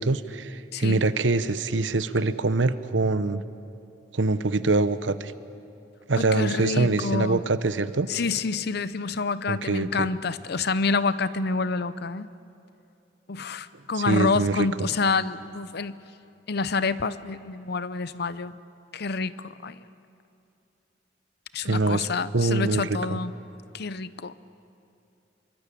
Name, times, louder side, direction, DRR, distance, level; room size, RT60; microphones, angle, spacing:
voice 1, 0.0-3.4 4.1-5.3 6.1-8.1 9.5-10.1 13.9-14.7 21.6-22.1 22.3-22.8 23.1-23.2, right 3 dB, 90° right, 13 dB, 0.9 m, -24 dB
voice 2, 0.7-1.0 6.2-7.4 8.1-12.3 13.3-16.0 16.5-18.6 18.9-19.9 21.5-23.3 23.7-24.3, left 4 dB, 60° left, 15 dB, 0.8 m, -28 dB
25.5 x 23.5 x 8.6 m, 2.7 s
head